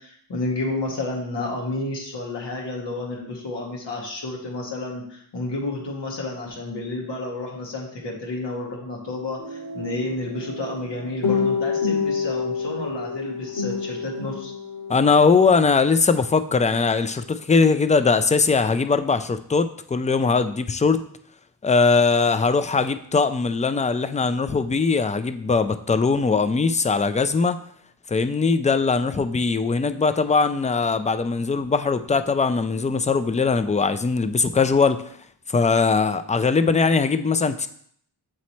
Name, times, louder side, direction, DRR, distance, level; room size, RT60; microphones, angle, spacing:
voice 1, 0.0-14.5, left 2 dB, 85° left, -2 dB, 1.4 m, -31 dB
sound 1, 9.4-15.1, left 5 dB, 65° left, 1.8 m, -28 dB
voice 2, 14.9-21.0 21.6-27.6 28.1-35.0 35.5-37.7, left 4 dB, 20° left, 11 dB, 0.3 m, -20 dB
7.6 x 3.1 x 4.1 m, 0.64 s
wide cardioid pair, 70°, 41 cm